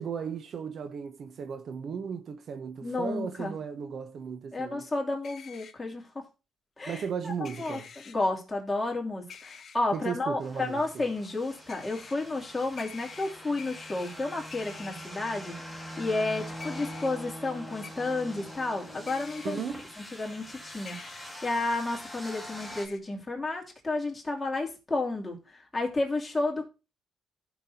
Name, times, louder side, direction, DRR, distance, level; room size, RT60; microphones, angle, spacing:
voice 1, 0.0-4.9 6.9-7.9 9.9-11.0 19.4-19.8, right 6 dB, 60° right, 0.9 m, -36 dB
voice 2, 2.8-3.5 4.5-6.2 6.8-7.8 8.1-19.6 20.2-26.7, left 2 dB, 20° left, 3.0 m, -32 dB
sound 1, 5.2-5.7 7.4-8.1 9.3-9.8 11.7-12.1 12.8-14.1 14.5-15.1 16.6-17.1 17.8-17.9 19.1-19.5 20.8-21.3 22.6-23.0, left 6 dB, 55° left, 1.1 m, -47 dB
sound 2, 10.4-22.9, equal, 5° right, 2.1 m, -43 dB
15.0 x 6.1 x 2.8 m
cardioid pair, 90°, 0 cm